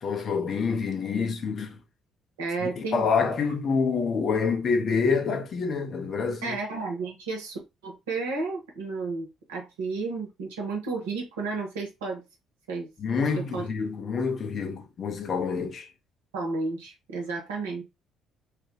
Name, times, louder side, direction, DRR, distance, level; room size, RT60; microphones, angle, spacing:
voice 1, 0.0-1.8 2.6-6.6 13.0-15.9, left 5 dB, 55° left, 0.8 m, -27 dB
voice 2, 2.4-3.1 6.4-12.2 12.7-12.9 13.3-13.7 16.3-17.8, right 3 dB, 85° right, 0.9 m, -32 dB
3.1 x 2.2 x 3.0 m
hypercardioid pair, 50°, 0 cm